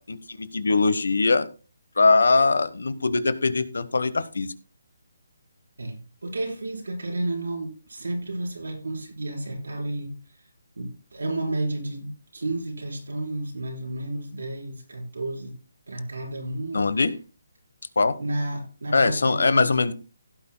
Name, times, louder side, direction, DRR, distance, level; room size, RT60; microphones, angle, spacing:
voice 1, 0.0-1.5 2.0-4.5 16.7-17.1 18.0-18.2 18.9-19.9, left 3 dB, 80° left, 1.1 m, -21 dB
voice 2, 5.8-10.1 10.4-10.5 10.8-15.5 15.9-16.8 18.2-19.6, right 2 dB, 90° right, 5.1 m, -31 dB
16.5 x 9.0 x 2.2 m
hypercardioid pair, 160°, 0 cm